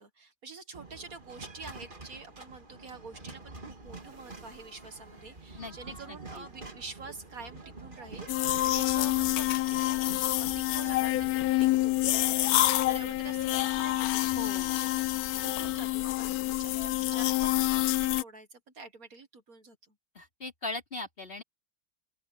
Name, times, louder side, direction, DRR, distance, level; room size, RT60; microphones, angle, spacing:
voice 1, 0.0-19.8, right 4 dB, 55° right, 2.1 m, -47 dB
sound 1, 0.7-17.0, right 3 dB, 30° right, 2.5 m, -48 dB
voice 2, 6.1-6.5 14.2-14.9 20.1-21.4, left 2 dB, 30° left, 4.1 m, -39 dB
sound 2, 8.3-18.2, left 16 dB, 70° left, 1.0 m, -27 dB
open air
omnidirectional pair, 1.8 m